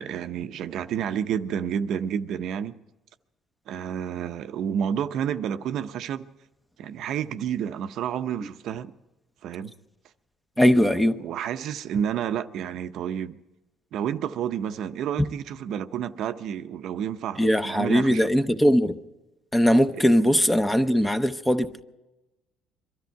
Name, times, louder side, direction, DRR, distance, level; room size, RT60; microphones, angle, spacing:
voice 1, 0.0-2.8 3.7-6.3 6.8-8.9 9.4-9.7 10.6-13.4 13.9-18.3, right 8 dB, 60° right, 0.6 m, -30 dB
voice 2, 10.6-11.2 17.4-19.0 19.5-21.8, equal, 5° left, 0.7 m, -20 dB
23.0 x 13.0 x 4.6 m
cardioid pair, 130°, 0 cm